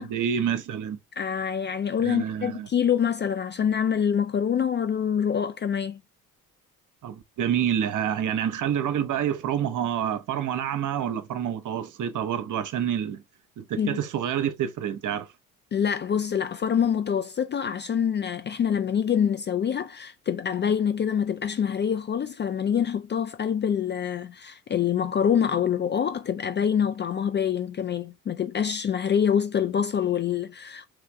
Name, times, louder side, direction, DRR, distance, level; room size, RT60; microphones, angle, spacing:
voice 1, 0.0-1.0 2.0-2.7 7.0-13.2 13.6-15.3, right 9 dB, 45° right, 0.8 m, -28 dB
voice 2, 1.2-6.0 13.8-14.0 15.7-30.9, left 8 dB, 25° left, 0.4 m, -25 dB
3.6 x 3.3 x 3.2 m
figure-of-eight pair, 50°, 44 cm